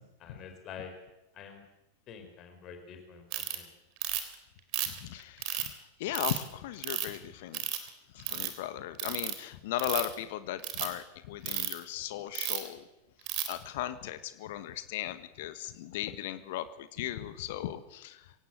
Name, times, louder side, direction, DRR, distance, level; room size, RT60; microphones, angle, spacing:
voice 1, 0.2-0.9 1.3-1.6 2.1-3.7, left 7 dB, 35° left, 5 dB, 5.0 m, -47 dB
Ratchet pawl, 3.3-3.6 4.0-4.3 4.7-5.7 6.1-6.4 6.8-7.2 7.5-7.9 8.2-8.5 9.0-9.3 9.7-10.1 10.6-10.9 11.5-11.7 12.3-12.7 13.3-13.5, right 13 dB, 40° right, 3.5 m, -33 dB
voice 2, 4.9-7.6 8.1-12.8 13.5-18.3, left 13 dB, 50° left, 12 dB, 1.6 m, -37 dB
27.0 x 17.0 x 8.1 m, 0.93 s
figure-of-eight pair, 90°, 0 cm